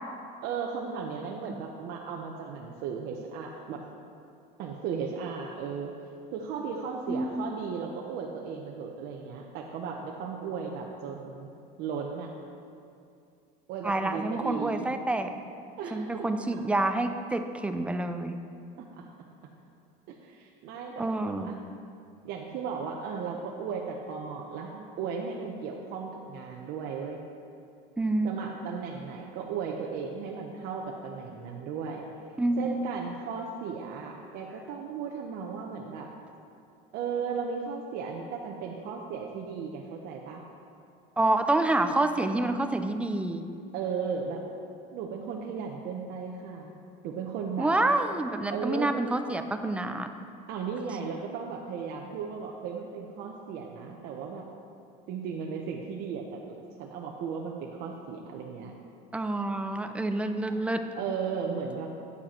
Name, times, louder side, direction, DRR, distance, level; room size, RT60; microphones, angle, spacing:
voice 1, 0.4-3.8 4.6-5.9 6.3-11.5 11.8-12.3 13.7-14.9 15.8-16.6 18.8-19.1 20.1-21.6 22.2-27.2 28.2-32.1 32.6-36.1 36.9-40.4 43.7-44.4 44.9-46.7 47.0-47.7 48.5-48.9 50.5-54.4 55.1-58.7 60.4-60.6 60.9-61.9, right 6 dB, 60° right, 0 dB, 0.8 m, -36 dB
voice 2, 7.0-7.5 13.8-15.3 15.9-18.4 21.0-21.5 28.0-28.3 32.4-32.8 41.2-43.4 47.6-50.1 59.1-60.8, right 2 dB, 5° right, 7 dB, 0.4 m, -28 dB
9.6 x 7.5 x 4.3 m, 2.5 s
cardioid pair, 150°, 19 cm